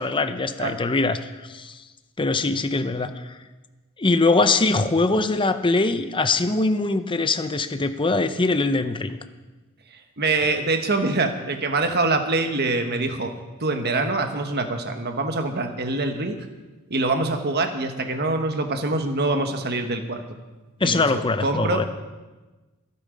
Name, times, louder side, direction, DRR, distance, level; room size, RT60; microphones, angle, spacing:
voice 1, 0.0-1.8 2.2-3.2 4.0-9.2 20.8-21.8, left 3 dB, 20° left, 10 dB, 0.6 m, -22 dB
voice 2, 9.9-13.3 13.6-16.5 16.9-20.4 20.8-21.8, right 2 dB, 45° right, 6 dB, 1.4 m, -25 dB
23.5 x 8.8 x 5.2 m, 1.2 s
head